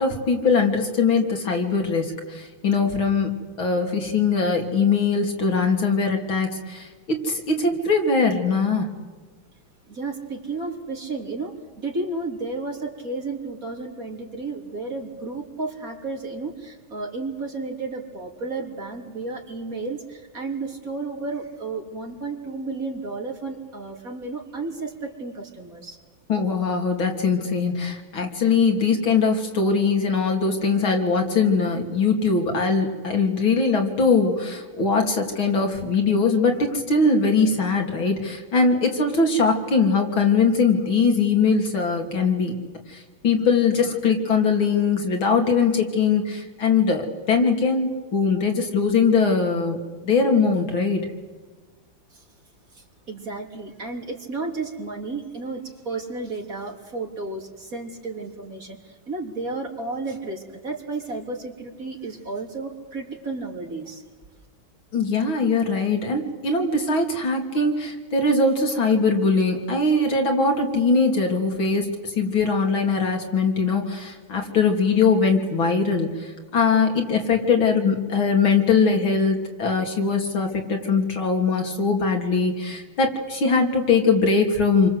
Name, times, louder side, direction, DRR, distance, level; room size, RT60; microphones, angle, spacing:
voice 1, 0.0-3.3 3.6-8.9 26.3-42.5 42.9-51.1 64.9-84.9, left 4 dB, 75° left, 2 dB, 3.9 m, -21 dB
voice 2, 9.9-26.0 52.1-52.2 52.7-64.0, right 3 dB, 40° right, 1 dB, 3.7 m, -32 dB
28.5 x 24.0 x 8.1 m, 1.4 s
omnidirectional pair, 2.2 m